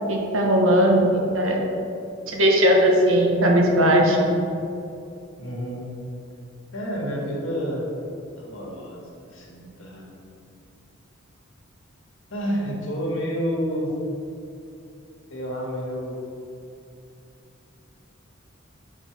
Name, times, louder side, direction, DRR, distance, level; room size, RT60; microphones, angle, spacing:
voice 1, 0.1-1.6 2.3-4.2, equal, 70° right, 0 dB, 1.0 m, -18 dB
voice 2, 5.4-6.0 6.7-7.8 8.4-10.1 12.3-13.9 15.3-16.2, equal, 70° left, -3 dB, 1.5 m, -29 dB
6.1 x 4.6 x 4.4 m, 2.7 s
head